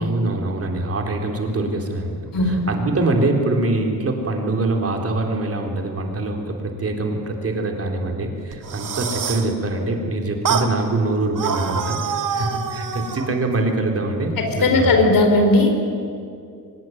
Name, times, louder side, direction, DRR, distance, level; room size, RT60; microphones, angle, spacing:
voice 1, 0.0-2.2 2.4-14.9, right 2 dB, 40° right, 2 dB, 3.9 m, -24 dB
voice 2, 2.3-2.7 14.4-15.7, left 2 dB, 75° left, 4 dB, 4.4 m, -17 dB
sound 1, 8.5-9.5 10.4-10.7 11.3-13.3, right 6 dB, 65° right, 2.1 m, -25 dB
24.5 x 20.5 x 9.4 m, 2.4 s
wide cardioid pair, 150°, 34 cm